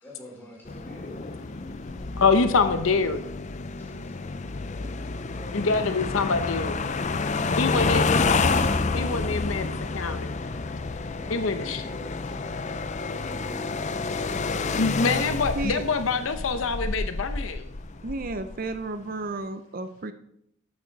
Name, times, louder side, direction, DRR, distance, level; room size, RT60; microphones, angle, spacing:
voice 1, 0.0-1.2 3.8-4.2 4.6-4.9 5.2-5.8 11.1-12.7 13.1-15.3 17.3-17.6, equal, 10° left, -4 dB, 4.2 m, -46 dB
sound 1, 0.7-18.8, left 4 dB, 35° left, 0.5 m, -29 dB
voice 2, 2.2-3.2 5.5-6.8 7.6-8.1 8.9-10.3 11.3-11.8 14.8-17.7, left 4 dB, 75° left, 8 dB, 0.9 m, -25 dB
voice 3, 18.0-20.1, right 2 dB, 45° right, 9 dB, 0.6 m, -32 dB
13.0 x 8.8 x 4.1 m, 0.74 s
head